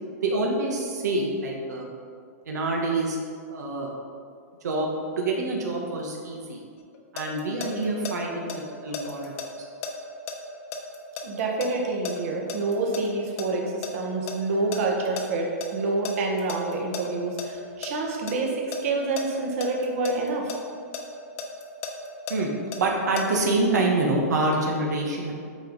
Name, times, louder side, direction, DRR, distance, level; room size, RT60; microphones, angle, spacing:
voice 1, 0.2-1.9 2.4-3.2 3.5-3.9 4.6-6.6 7.1-9.3 9.6-9.7 22.3-22.5 22.8-25.3, right 2 dB, 85° right, -1 dB, 1.3 m, -26 dB
sound 1, 6.8-8.1 8.5-13.1 13.4-15.2 15.6-15.7 16.0-17.5 17.8-18.3 18.7-20.6 20.9-23.2, left 5 dB, 45° left, 1.1 m, -34 dB
voice 2, 11.2-18.5 18.8-20.6, right 3 dB, 55° right, 0 dB, 1.5 m, -27 dB
9.0 x 5.4 x 4.0 m, 2.2 s
hypercardioid pair, 140°, 9 cm